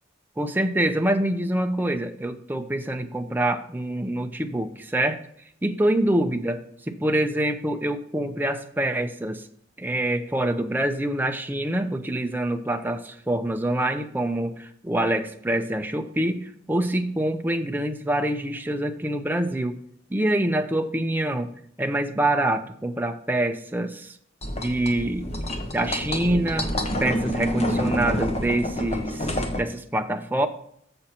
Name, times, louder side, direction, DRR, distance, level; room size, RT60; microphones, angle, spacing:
voice 1, 0.4-5.2 5.6-6.6 6.9-9.4 9.8-19.8 20.1-21.5 21.8-24.2 24.6-26.7 27.0-30.5, right 1 dB, 10° right, 6 dB, 0.6 m, -25 dB
sound 1, 24.4-29.6, equal, 35° left, 1.0 m, -28 dB
7.1 x 6.5 x 4.3 m, 0.67 s
head